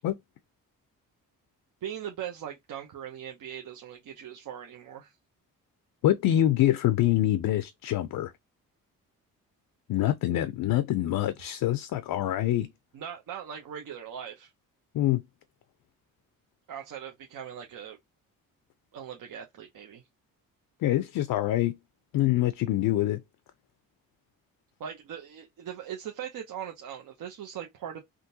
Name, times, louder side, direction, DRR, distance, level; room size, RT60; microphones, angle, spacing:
voice 1, 1.8-5.1 12.9-14.5 16.7-18.0 18.9-20.0 24.8-28.0, right 9 dB, 65° right, 0.8 m, -40 dB
voice 2, 6.0-8.3 9.9-12.7 14.9-15.2 20.8-21.7 22.1-23.2, left 13 dB, 65° left, 0.5 m, -25 dB
3.7 x 2.2 x 2.7 m
supercardioid pair, 65°, 36 cm